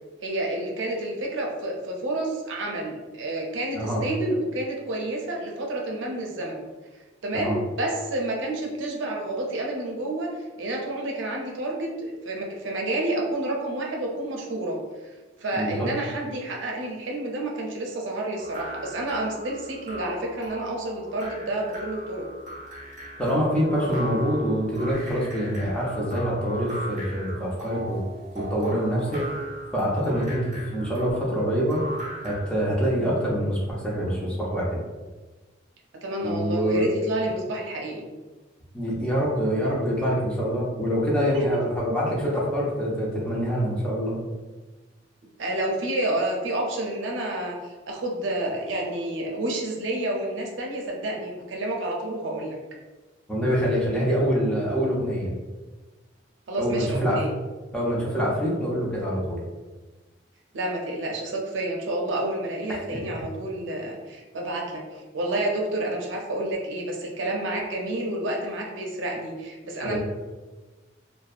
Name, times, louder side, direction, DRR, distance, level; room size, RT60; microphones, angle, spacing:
voice 1, 0.2-6.7 7.2-10.3 10.6-22.3 36.0-38.1 41.3-41.6 45.4-52.6 56.5-57.3 60.5-70.0, right 1 dB, 80° right, -1 dB, 0.5 m, -29 dB
voice 2, 15.5-15.9 23.2-28.0 28.3-29.2 29.7-31.8 32.2-34.8 36.2-36.8 38.7-44.2 53.3-55.3 56.6-57.2 57.7-59.4 62.7-63.0 69.8-70.0, equal, 5° left, -6 dB, 0.5 m, -25 dB
sound 1, 18.4-32.6, right 1 dB, 40° right, 0.7 m, -38 dB
2.6 x 2.1 x 2.4 m, 1.2 s
head